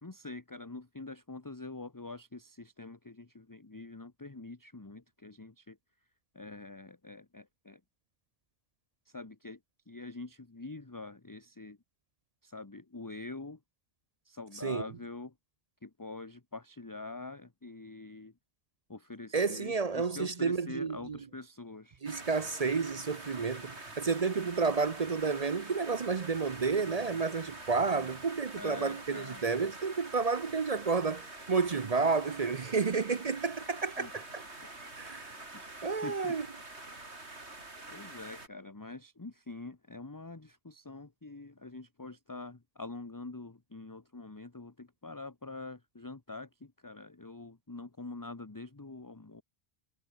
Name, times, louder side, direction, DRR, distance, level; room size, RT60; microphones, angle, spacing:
voice 1, 0.0-5.8 6.3-7.8 9.1-9.6 9.9-11.8 12.4-13.6 14.2-15.3 15.8-18.4 18.9-22.0 28.6-29.4 34.0-34.1 34.6-35.1 35.5-36.4 37.9-49.4, left 3 dB, 20° left, 1.1 m, -45 dB
voice 2, 19.3-21.2 22.0-34.4 35.0-35.4 35.8-36.5, right 4 dB, 40° right, 0.7 m, -31 dB
sound 1, 22.1-38.5, right 2 dB, 90° right, 4.7 m, -46 dB
omnidirectional pair, 1.1 m